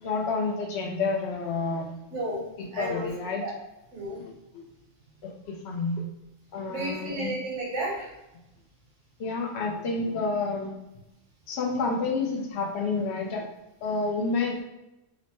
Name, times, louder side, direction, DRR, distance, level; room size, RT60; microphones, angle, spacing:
voice 1, 0.0-1.9 2.6-3.4 4.2-4.3 5.2-6.0 6.5-7.4 9.2-10.7 11.5-13.4 13.8-14.6, left 3 dB, 65° left, 1 dB, 0.8 m, -29 dB
voice 2, 2.1-2.4 2.7-3.1 3.4-3.5 3.9-4.2 6.7-8.1, right 1 dB, 70° right, -3 dB, 1.2 m, -32 dB
3.0 x 2.1 x 2.9 m, 0.93 s
omnidirectional pair, 1.3 m